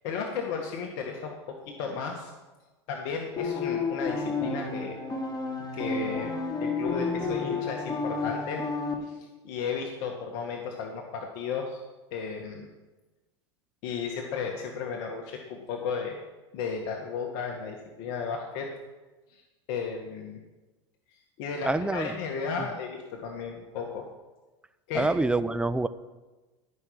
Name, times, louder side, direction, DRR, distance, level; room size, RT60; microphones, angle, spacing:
voice 1, 0.0-2.3 2.9-5.0 5.7-8.6 9.0-11.8 12.1-12.7 13.8-16.2 16.5-18.7 19.3-20.4 21.1-24.1 24.9-25.1, left 5 dB, 60° left, 2 dB, 1.8 m, -34 dB
sound 1, 3.4-8.9, left 4 dB, 30° left, 3.1 m, -31 dB
voice 2, 21.6-22.2 22.6-22.7 24.9-25.9, right 2 dB, 5° right, 13 dB, 0.7 m, -26 dB
14.5 x 6.3 x 8.7 m, 1.2 s
hypercardioid pair, 105°, 15 cm